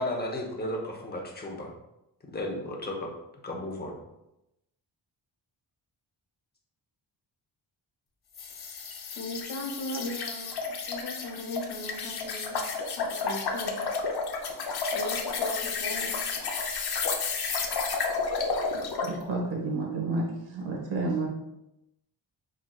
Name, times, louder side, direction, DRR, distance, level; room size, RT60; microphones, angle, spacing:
voice 1, 0.0-1.7 2.3-3.1 3.4-4.0, left 1 dB, 20° left, -1 dB, 0.8 m, -33 dB
sound 1, 8.4-19.2, left 4 dB, 60° left, 0.6 m, -31 dB
voice 2, 9.1-10.5 10.9-12.6 13.0-13.8 14.9-16.2, left 1 dB, 85° left, 1 dB, 1.0 m, -37 dB
voice 3, 19.0-21.3, right 3 dB, 90° right, -1 dB, 1.3 m, -30 dB
4.6 x 3.8 x 2.3 m, 0.87 s
wide cardioid pair, 150°, 44 cm